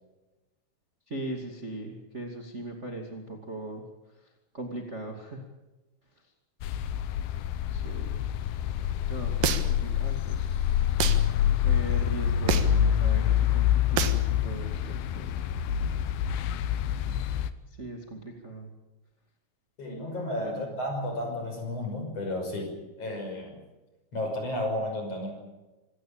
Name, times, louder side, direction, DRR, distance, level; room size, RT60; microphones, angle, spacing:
voice 1, 1.1-3.8 4.2-4.3 4.5-5.4 7.7-8.2 9.1-10.6 11.6-15.5 17.7-18.7 20.5-20.8, right 2 dB, 35° right, 2 dB, 1.1 m, -39 dB
sound 1, 6.6-17.5, left 10 dB, 80° left, 2.2 m, -26 dB
sound 2, 9.4-9.9 11.0-11.2 12.5-12.8 14.0-14.2, right 8 dB, 65° right, 2.3 m, -27 dB
voice 2, 19.8-23.6 24.1-25.3, left 1 dB, 30° left, 3 dB, 6.8 m, -32 dB
26.5 x 16.0 x 8.7 m, 1.1 s
omnidirectional pair, 5.7 m